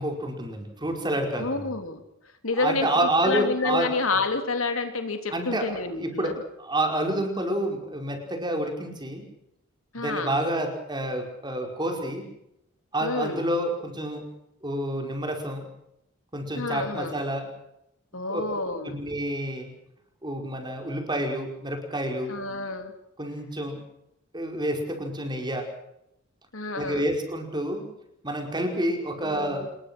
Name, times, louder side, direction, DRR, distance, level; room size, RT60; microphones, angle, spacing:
voice 1, 0.0-1.7 2.6-3.9 5.3-9.2 10.0-12.3 12.9-14.3 14.6-15.6 16.3-17.5 18.3-18.4 18.8-19.7 20.2-22.3 23.2-23.8 24.3-25.7 26.7-27.8 28.2-29.7, right 1 dB, 20° right, 3 dB, 5.1 m, -29 dB
voice 2, 1.3-2.0 2.4-6.4 9.9-10.3 13.0-13.4 16.5-17.2 18.1-19.0 22.3-22.9 26.5-27.0 29.2-29.6, left 3 dB, 80° left, 7 dB, 3.3 m, -29 dB
26.5 x 21.5 x 6.2 m, 0.80 s
head